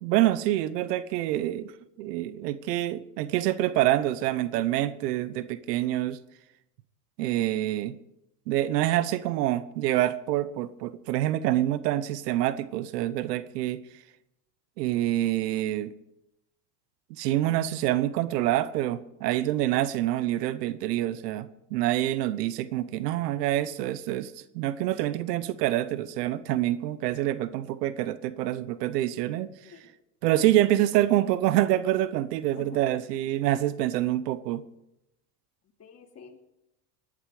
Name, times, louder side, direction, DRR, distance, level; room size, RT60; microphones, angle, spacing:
voice 1, 0.0-1.7 2.0-6.2 7.2-8.0 8.5-13.8 14.8-15.9 17.2-29.5 30.2-34.6, right 14 dB, 80° right, 15 dB, 1.1 m, -26 dB
voice 2, 35.8-36.4, left 6 dB, 30° left, 2 dB, 2.9 m, -48 dB
19.0 x 11.5 x 4.9 m, 0.86 s
supercardioid pair, 95°, 47 cm